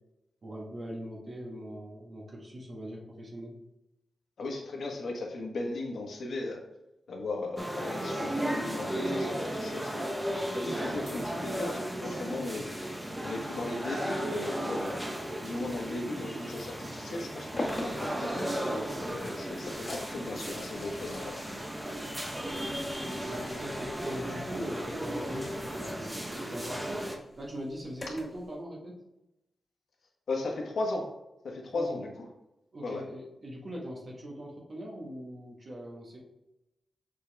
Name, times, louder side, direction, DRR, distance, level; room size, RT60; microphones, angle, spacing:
voice 1, 0.4-3.6 23.2-29.0 31.7-32.0 32.7-36.2, equal, 45° right, -3 dB, 1.7 m, -41 dB
voice 2, 4.4-6.6 7.1-10.1 10.5-12.7 13.2-15.0 15.4-18.5 19.0-21.3 30.3-31.1 31.4-32.1 32.8-33.0, left 2 dB, 75° left, 1 dB, 1.3 m, -36 dB
sound 1, 7.6-27.2, equal, 5° right, 0.8 m, -35 dB
sound 2, 17.6-28.4, left 1 dB, 30° left, 1.5 m, -44 dB
7.1 x 4.2 x 3.5 m, 0.90 s
wide cardioid pair, 145°, 0 cm